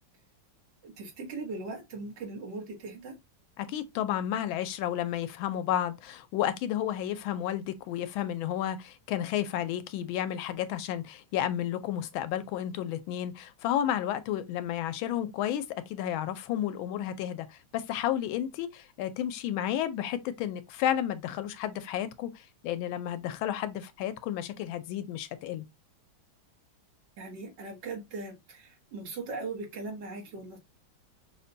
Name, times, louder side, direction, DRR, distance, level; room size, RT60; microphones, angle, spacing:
voice 1, 0.8-3.2 27.2-30.6, right 3 dB, 65° right, 1.7 m, -39 dB
voice 2, 3.6-25.6, left 11 dB, 85° left, 1.4 m, -32 dB
5.5 x 2.2 x 2.6 m
omnidirectional pair, 2.2 m